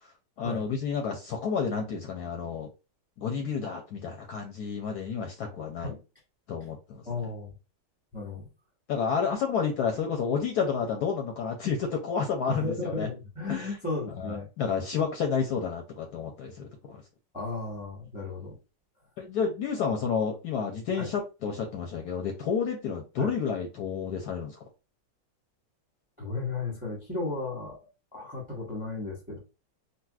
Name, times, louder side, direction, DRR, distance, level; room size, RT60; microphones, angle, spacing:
voice 1, 0.4-2.7 3.2-6.0 6.5-7.0 8.9-13.1 13.5-13.7 14.2-17.0 19.2-24.6, left 6 dB, 70° left, 1.0 m, -30 dB
voice 2, 7.0-7.5 8.1-8.5 12.5-14.5 17.3-18.6 21.0-21.1 23.2-23.3 26.2-29.4, left 3 dB, 5° right, 0.8 m, -34 dB
4.0 x 2.2 x 2.3 m
omnidirectional pair, 2.0 m